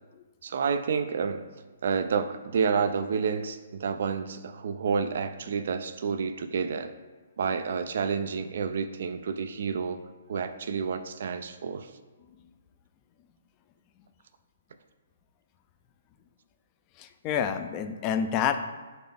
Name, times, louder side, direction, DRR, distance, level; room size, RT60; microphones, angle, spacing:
voice 1, 0.4-1.5 1.8-6.9 7.4-10.0 10.3-11.9, right 6 dB, 65° right, 10 dB, 0.3 m, -29 dB
voice 2, 17.0-18.6, left 8 dB, 30° left, 8 dB, 0.3 m, -28 dB
3.9 x 2.9 x 3.4 m, 1.3 s
hypercardioid pair, 140°, 0 cm